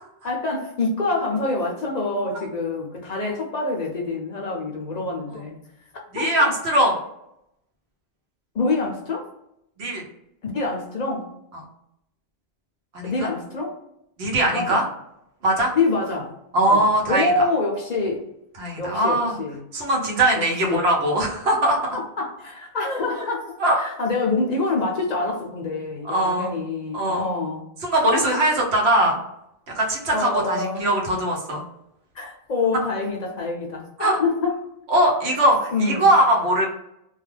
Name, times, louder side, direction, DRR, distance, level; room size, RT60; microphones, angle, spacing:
voice 1, 0.2-5.6 6.1-6.5 8.5-9.3 10.4-11.3 13.0-13.8 14.5-14.8 15.8-16.3 16.6-18.3 18.8-19.6 20.3-20.8 21.9-27.7 28.1-28.4 30.1-30.9 32.1-34.6 35.7-36.1, left 3 dB, 55° left, 0 dB, 0.5 m, -26 dB
voice 2, 6.1-6.9 9.8-10.0 12.9-13.3 14.2-14.8 15.4-15.7 16.5-17.5 18.6-19.4 19.7-22.0 23.6-23.8 26.1-26.5 26.9-27.2 27.8-29.2 29.7-31.6 32.7-32.8 34.0-34.2 34.9-36.7, right 1 dB, 90° right, -1 dB, 1.0 m, -21 dB
2.3 x 2.3 x 3.1 m, 0.81 s
omnidirectional pair, 1.1 m